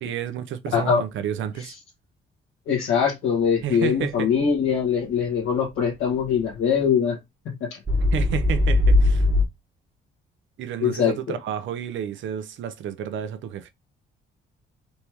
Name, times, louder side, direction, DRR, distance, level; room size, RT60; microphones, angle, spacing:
voice 1, 0.0-1.7 3.6-4.3 8.1-9.3 10.6-13.7, right 9 dB, 75° right, 0.7 m, -31 dB
voice 2, 0.7-1.0 2.7-7.2 7.4-7.8 10.8-11.1, left 7 dB, 85° left, 1.6 m, -22 dB
sound 1, 6.4-6.5 7.9-9.4, left 2 dB, 25° right, 1.1 m, -19 dB
4.2 x 3.0 x 3.5 m
cardioid pair, 90°, 20 cm